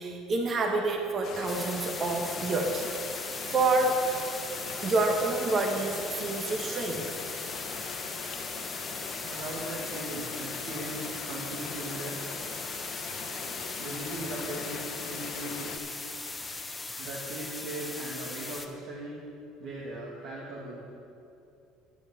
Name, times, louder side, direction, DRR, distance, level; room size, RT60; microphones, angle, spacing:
voice 1, 0.0-2.9 3.5-4.0 4.8-7.2 13.3-13.4, right 2 dB, 40° right, 2 dB, 1.4 m, -28 dB
sound 1, 1.2-15.8, left 6 dB, 60° left, 1.0 m, -40 dB
sound 2, 1.5-18.7, left 3 dB, 15° left, 1.0 m, -39 dB
voice 2, 9.2-12.2 13.8-16.0 17.0-19.2 19.6-20.8, right 1 dB, 60° right, -6 dB, 2.2 m, -39 dB
9.6 x 9.0 x 7.2 m, 2.7 s
supercardioid pair, 90°, 0 cm